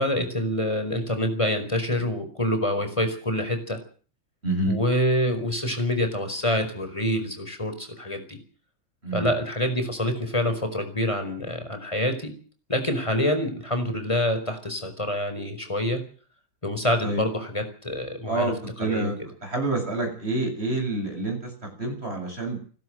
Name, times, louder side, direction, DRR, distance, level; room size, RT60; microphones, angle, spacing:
voice 1, 0.0-3.8 4.6-8.4 9.1-12.3 12.7-16.0 16.6-18.5 18.8-19.1, left 1 dB, 15° left, 8 dB, 5.0 m, -26 dB
voice 2, 4.4-4.8 9.0-9.3 17.0-17.2 18.3-19.2 19.4-22.7, right 2 dB, 30° right, 4 dB, 8.1 m, -28 dB
27.5 x 12.5 x 7.9 m, 0.44 s
omnidirectional pair, 2.1 m